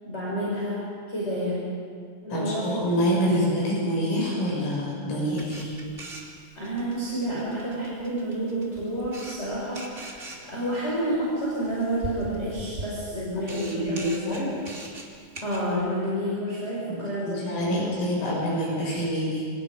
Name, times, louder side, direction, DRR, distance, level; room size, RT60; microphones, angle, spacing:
voice 1, 0.0-1.7 2.2-3.7 6.5-14.5 15.4-17.9, equal, 10° left, -7 dB, 6.4 m, -30 dB
voice 2, 2.3-5.8 13.5-14.5 16.8-19.5, equal, 80° left, -4 dB, 9.5 m, -27 dB
Camera, 5.3-15.7, right 1 dB, 20° right, 2.5 m, -41 dB
28.5 x 28.0 x 5.3 m, 2.1 s
omnidirectional pair, 5.8 m